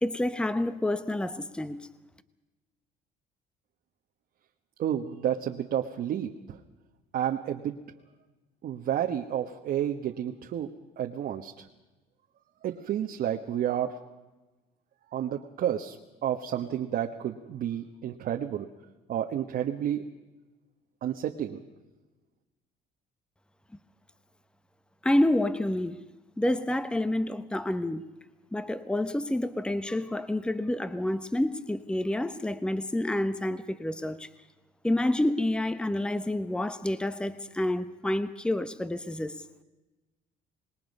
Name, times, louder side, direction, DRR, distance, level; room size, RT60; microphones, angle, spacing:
voice 1, 0.0-1.9 25.0-26.0 26.4-28.0 28.5-34.3 34.8-39.4, left 1 dB, 5° left, 1.0 m, -28 dB
voice 2, 4.8-6.6 7.1-7.8 8.6-11.7 12.6-14.0 15.1-16.0 16.2-18.7 19.1-20.0 21.0-21.6, right 10 dB, 60° right, 1.3 m, -31 dB
26.5 x 20.5 x 5.4 m
cardioid pair, 110°, 17 cm